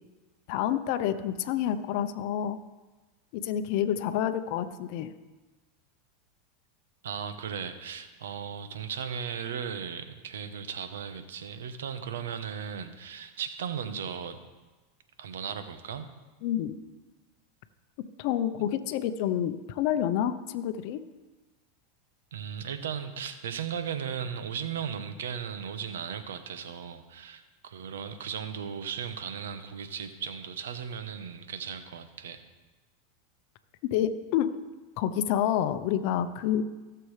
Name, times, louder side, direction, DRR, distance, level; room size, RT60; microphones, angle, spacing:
voice 1, 0.5-2.6 3.3-5.1 16.4-16.8 18.2-21.0 33.9-34.6 35.0-36.6, left 10 dB, 60° left, 10 dB, 0.7 m, -28 dB
voice 2, 7.0-14.4 15.2-16.1 18.6-18.7 22.3-32.4, right 7 dB, 80° right, 9 dB, 0.9 m, -36 dB
17.0 x 6.8 x 3.3 m, 1.2 s
hypercardioid pair, 105°, 0 cm